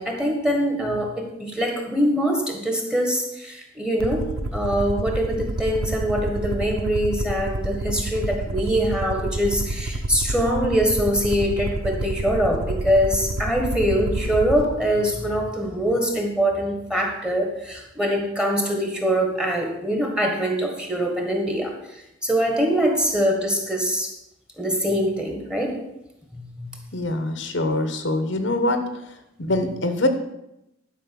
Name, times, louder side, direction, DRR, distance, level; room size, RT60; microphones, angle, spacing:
voice 1, 0.0-21.7 22.2-24.1 24.6-25.8 26.4-26.8, equal, 5° right, 2 dB, 1.6 m, -23 dB
Aircraft, 4.0-14.7, right 2 dB, 85° right, 0.9 m, -29 dB
voice 2, 26.9-28.8 29.4-30.1, left 2 dB, 60° left, 8 dB, 1.1 m, -23 dB
11.5 x 5.4 x 7.1 m, 0.86 s
head